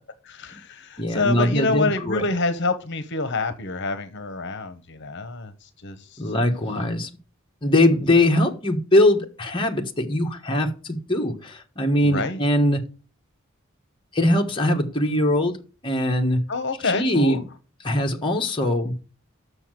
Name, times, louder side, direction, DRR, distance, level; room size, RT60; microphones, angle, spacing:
voice 1, 0.2-6.2 12.0-12.4 16.5-17.4, left 3 dB, 55° left, 1.0 m, -27 dB
voice 2, 1.0-2.2 6.2-7.1 7.6-12.8 14.1-15.6 15.8-16.4 16.8-17.4 17.8-18.9, left 1 dB, 25° left, 1.3 m, -21 dB
6.9 x 6.5 x 7.7 m
head